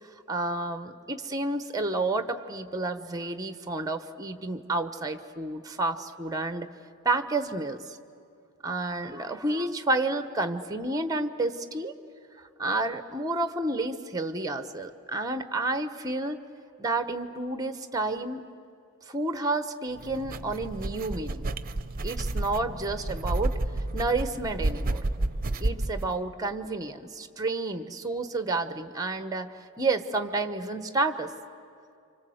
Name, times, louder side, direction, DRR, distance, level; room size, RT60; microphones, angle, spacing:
voice 1, 0.3-6.7 7.0-7.8 8.6-11.9 12.4-16.4 16.8-18.5 19.1-21.5 22.0-23.6 23.9-25.0 25.6-31.3, right 2 dB, 15° right, 10 dB, 1.1 m, -30 dB
sound 1, 20.0-26.1, right 2 dB, 40° right, 0.8 m, -31 dB
29.0 x 26.0 x 7.9 m, 2.5 s
head